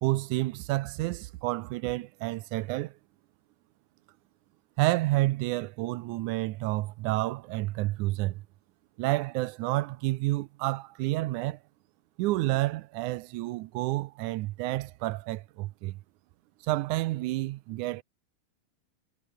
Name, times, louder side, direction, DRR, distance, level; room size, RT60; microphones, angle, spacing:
voice 1, 0.0-3.0 4.8-8.4 9.0-11.6 12.2-16.0 16.6-18.0, right 18 dB, 80° right, 1.8 m, -29 dB
omnidirectional pair, 4.2 m